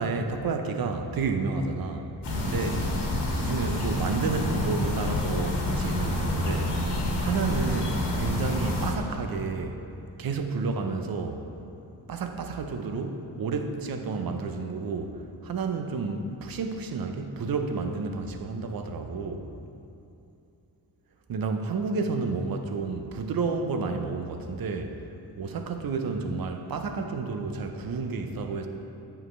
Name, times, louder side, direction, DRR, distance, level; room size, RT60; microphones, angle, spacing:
voice 1, 0.0-2.1 2.3-2.8 3.3-6.8 7.2-9.8 10.2-11.4 12.1-19.5 21.3-24.9 25.4-28.7, right 4 dB, 55° right, 6 dB, 0.8 m, -30 dB
sound 1, 2.2-8.9, left 1 dB, 70° left, 1.5 m, -28 dB
8.7 x 5.6 x 3.3 m, 2.7 s
supercardioid pair, 50°, 43 cm